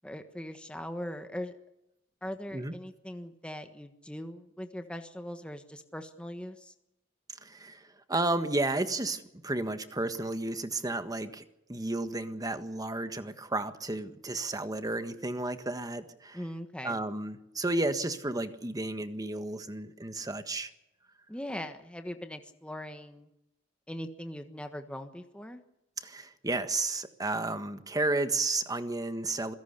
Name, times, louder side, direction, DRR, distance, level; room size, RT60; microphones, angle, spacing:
voice 1, 0.0-1.5 2.2-6.7 16.3-17.0 21.3-23.3 23.9-25.6, left 1 dB, 5° left, 6 dB, 1.4 m, -40 dB
voice 2, 7.4-11.4 11.7-16.4 16.8-20.7 26.0-29.5, right 2 dB, 20° right, 9 dB, 1.5 m, -32 dB
26.0 x 17.0 x 6.8 m, 0.87 s
head